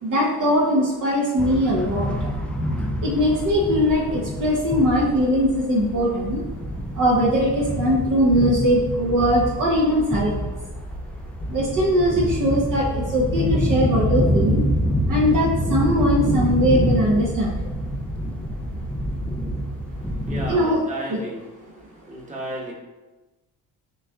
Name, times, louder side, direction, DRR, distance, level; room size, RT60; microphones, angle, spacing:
voice 1, 0.0-2.1 3.0-6.4 6.9-10.5 11.5-14.6 15.1-17.7 20.5-20.8 21.1-21.2, equal, 50° right, -3 dB, 0.9 m, -21 dB
sound 1, 1.4-20.6, equal, 5° left, 0.3 m, -26 dB
voice 2, 20.2-21.4 22.1-22.7, right 1 dB, 15° right, -3 dB, 1.1 m, -32 dB
6.2 x 2.6 x 2.3 m, 1.1 s
supercardioid pair, 70°, 42 cm